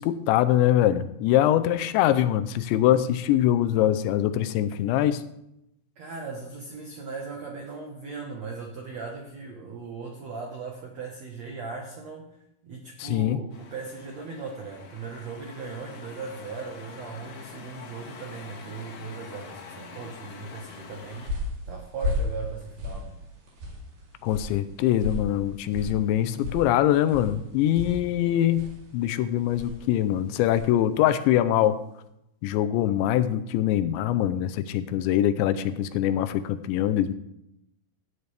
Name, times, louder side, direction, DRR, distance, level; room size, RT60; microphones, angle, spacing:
voice 1, 0.0-5.2 13.0-13.4 24.2-31.8 32.4-37.1, left 12 dB, 80° left, 11 dB, 2.9 m, -23 dB
voice 2, 6.0-12.4 12.6-21.3 21.7-23.2, right 4 dB, 90° right, 1 dB, 1.5 m, -38 dB
sound 1, 13.5-21.3, left 5 dB, 50° left, 2.2 m, -45 dB
sound 2, 20.9-30.8, left 2 dB, 55° right, 5.0 m, -36 dB
17.0 x 9.7 x 3.4 m, 0.80 s
omnidirectional pair, 5.3 m